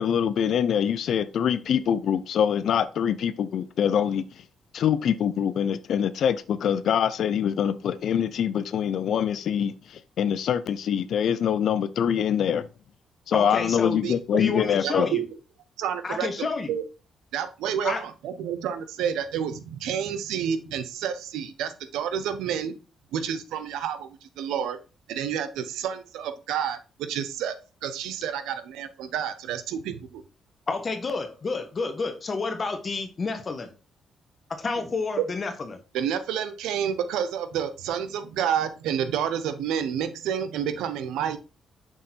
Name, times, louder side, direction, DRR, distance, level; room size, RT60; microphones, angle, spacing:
voice 1, 0.0-4.2 4.7-9.7 10.2-12.7 13.3-15.1, left 8 dB, 65° left, 0.5 m, -24 dB
voice 2, 13.3-14.0 14.4-15.2 16.0-16.7 17.8-18.0 30.7-33.7 34.5-35.8, left 4 dB, 35° left, 1.2 m, -29 dB
voice 3, 14.0-15.3 15.8-16.8 17.3-22.7 23.1-24.8 25.1-26.8 27.1-27.5 27.8-30.2 35.9-41.4, right 8 dB, 90° right, 0.7 m, -29 dB
6.3 x 3.7 x 4.2 m
cardioid pair, 90°, 0 cm